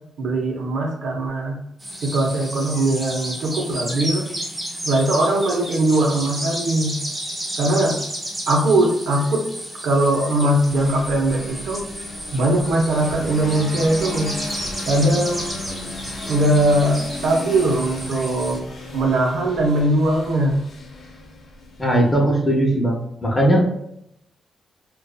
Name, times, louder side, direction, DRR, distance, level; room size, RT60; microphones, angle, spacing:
voice 1, 0.2-1.6 2.0-4.3 4.8-7.0 7.6-8.0 8.5-9.5 9.8-11.9 12.3-14.4 14.9-15.6 16.3-18.6 18.9-20.6, right 1 dB, 85° right, 0 dB, 0.6 m, -20 dB
sound 1, 1.8-18.6, right 1 dB, 20° right, 0.7 m, -32 dB
sound 2, 10.6-22.3, left 2 dB, 60° left, 0.5 m, -35 dB
voice 2, 21.8-23.7, right 1 dB, 15° left, -2 dB, 0.7 m, -18 dB
2.5 x 2.2 x 2.3 m, 0.74 s
wide cardioid pair, 145°, 0 cm